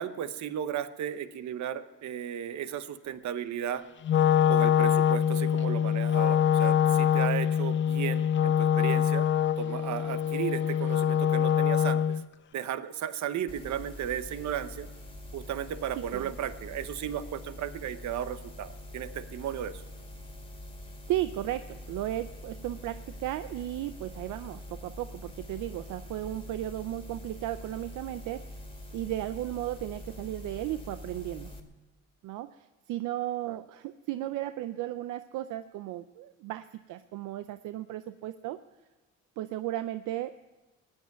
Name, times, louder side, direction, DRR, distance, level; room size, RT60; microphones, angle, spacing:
voice 1, 0.0-3.8 4.5-9.3 9.6-12.2 12.5-14.9 15.3-19.8 33.5-33.6, right 9 dB, 70° right, 12 dB, 1.0 m, -35 dB
Wind instrument woodwind instrument, 4.0-12.2, left 9 dB, 40° left, 0.4 m, -24 dB
sound 1, 13.5-31.6, left 1 dB, 20° left, 2.2 m, -44 dB
voice 2, 16.0-16.3 21.1-28.4 28.9-31.5 32.2-38.6 39.4-40.3, right 14 dB, 90° right, 11 dB, 0.6 m, -35 dB
15.0 x 9.8 x 9.3 m, 1.2 s
cardioid pair, 90°, 30 cm